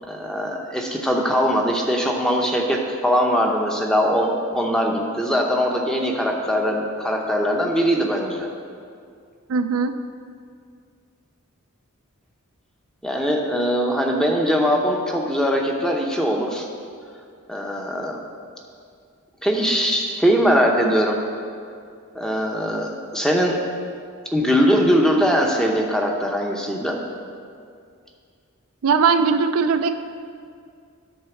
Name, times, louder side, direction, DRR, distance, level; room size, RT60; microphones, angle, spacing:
voice 1, 0.1-8.5 13.0-16.7 17.5-18.2 19.4-21.2 22.1-23.6 24.3-27.0, equal, 5° left, 0 dB, 0.7 m, -21 dB
voice 2, 9.5-9.9 28.8-30.0, right 5 dB, 70° right, 9 dB, 0.4 m, -19 dB
10.0 x 4.0 x 7.0 m, 2.3 s
head